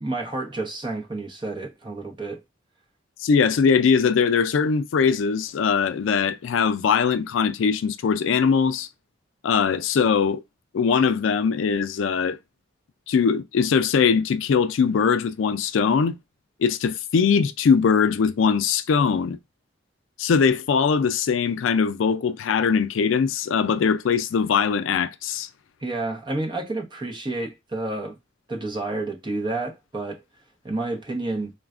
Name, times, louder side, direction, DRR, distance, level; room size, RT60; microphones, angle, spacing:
voice 1, 0.0-2.4 25.8-28.2 28.5-30.2 30.6-31.5, right 2 dB, 25° right, 0.8 m, -30 dB
voice 2, 3.2-8.9 9.4-10.4 10.7-12.4 13.1-16.2 16.6-19.4 20.2-25.5, left 6 dB, 80° left, 0.4 m, -21 dB
3.9 x 2.2 x 2.4 m
head